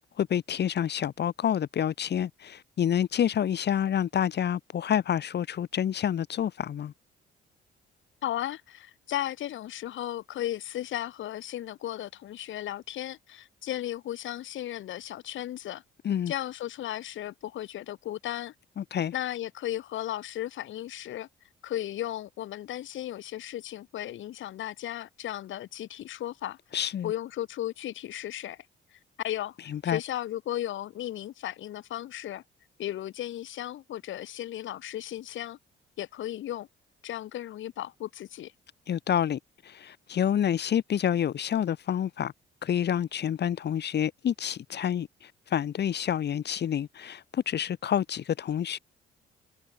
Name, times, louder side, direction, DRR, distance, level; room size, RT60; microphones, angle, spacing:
voice 1, 0.0-6.9 16.0-16.3 18.8-19.1 26.7-27.1 29.7-30.0 38.9-42.3 42.6-48.8, left 9 dB, 60° left, 2.1 m, -28 dB
voice 2, 8.2-15.8 16.3-18.5 19.1-21.3 21.6-26.6 27.0-28.7 28.9-32.4 32.8-35.6 36.0-36.7 37.0-38.5, left 12 dB, 75° left, 2.4 m, -35 dB
cardioid pair, 90°, 20 cm